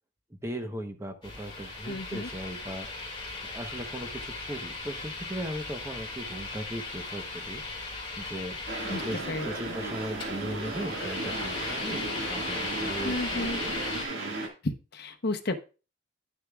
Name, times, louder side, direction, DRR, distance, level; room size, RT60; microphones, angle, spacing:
voice 1, 0.4-3.2 3.5-8.6 8.9-14.0, right 1 dB, 15° right, 6 dB, 0.9 m, -38 dB
sound 1, 1.2-14.0, left 3 dB, 25° left, 2.6 m, -38 dB
voice 2, 1.8-2.3 8.8-9.0 9.3-9.8 13.0-13.6 14.6-15.6, left 2 dB, 60° left, 7 dB, 0.9 m, -33 dB
sound 2, 8.7-14.5, right 2 dB, 75° right, 1.9 m, -35 dB
10.5 x 6.6 x 2.4 m, 0.33 s
head